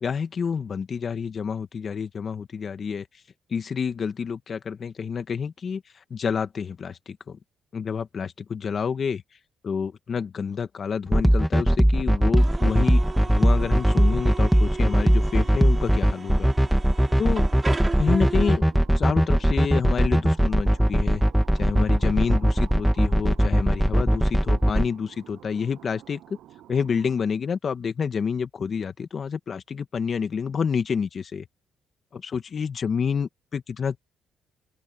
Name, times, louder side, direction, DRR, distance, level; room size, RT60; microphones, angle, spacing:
voice 1, 0.0-3.0 3.5-5.8 6.1-7.4 7.7-9.2 9.6-16.5 17.2-17.5 18.0-18.6 19.0-21.2 21.6-26.2 26.7-31.5 32.1-34.0, left 6 dB, 45° left, 1.7 m, -28 dB
sound 1, 11.1-24.9, equal, 5° right, 2.0 m, -19 dB
sound 2, 12.1-27.2, right 13 dB, 80° right, 7.2 m, -49 dB
sound 3, 12.4-18.5, right 3 dB, 20° right, 6.4 m, -36 dB
open air
cardioid pair, 90°, 0 cm